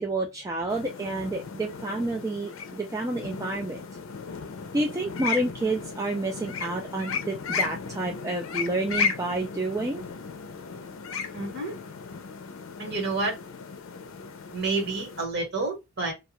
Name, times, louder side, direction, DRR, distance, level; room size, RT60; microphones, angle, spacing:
voice 1, 0.0-3.8 4.7-10.0, right 2 dB, 15° right, 0.3 m, -29 dB
sound 1, 0.7-15.3, left 6 dB, 75° left, 0.5 m, -35 dB
voice 2, 11.3-11.7 12.8-13.3 14.5-16.1, right 3 dB, 55° right, 1.3 m, -29 dB
2.3 x 2.3 x 2.8 m
head